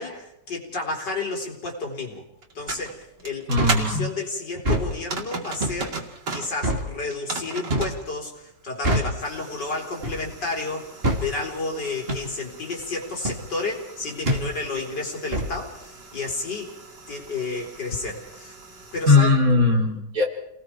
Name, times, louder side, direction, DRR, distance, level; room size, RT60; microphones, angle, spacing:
voice 1, 0.0-2.2 2.5-5.9 6.3-16.7 17.1-18.5 18.9-19.4, left 3 dB, 80° left, 1 dB, 4.7 m, -31 dB
sound 1, 2.4-3.9 4.9-6.5 7.0-8.0 9.2-19.1, right 3 dB, 90° right, 3.3 m, -37 dB
voice 2, 3.5-4.1 19.1-20.2, left 3 dB, 55° right, 0 dB, 4.1 m, -19 dB
sound 2, 3.6-3.9 4.6-4.9 5.6-5.8 6.6-6.9 7.7-8.0 8.8-9.2 10.0-10.3 11.0-11.3 12.1-12.3 13.2-13.4 14.3-14.5 15.3-15.6, equal, 35° right, 3.0 m, -24 dB
29.5 x 19.5 x 4.6 m, 0.78 s
omnidirectional pair, 1.8 m